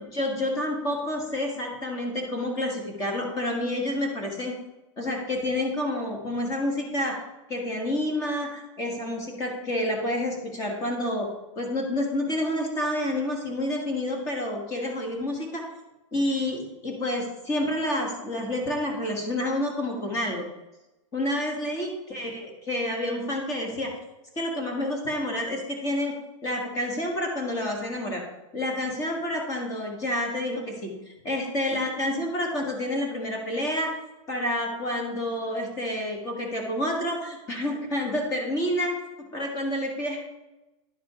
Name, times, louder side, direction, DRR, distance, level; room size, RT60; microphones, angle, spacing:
voice 1, 0.0-4.5 5.0-7.2 7.5-11.3 11.5-15.7 16.1-20.5 21.1-23.9 24.3-26.1 26.4-28.2 28.5-33.9 34.3-39.0 39.3-40.2, left 1 dB, 20° left, 2 dB, 1.4 m, -29 dB
10.5 x 4.9 x 4.7 m, 0.99 s
supercardioid pair, 165°, 17 cm